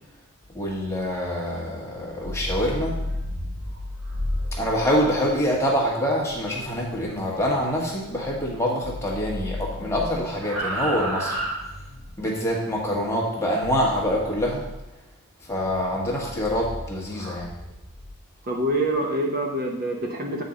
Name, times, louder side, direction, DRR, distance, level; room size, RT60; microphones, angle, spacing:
voice 1, 0.5-3.0 4.5-11.4 12.2-14.6 15.4-17.5, equal, 15° left, -3 dB, 1.4 m, -25 dB
sound 1, 2.1-8.6 8.8-12.2 13.6-14.9 15.5-18.1, equal, 85° right, 2.6 m, -33 dB
voice 2, 18.4-20.4, right 1 dB, 45° right, 1 dB, 0.9 m, -25 dB
8.4 x 4.1 x 5.1 m, 0.97 s
head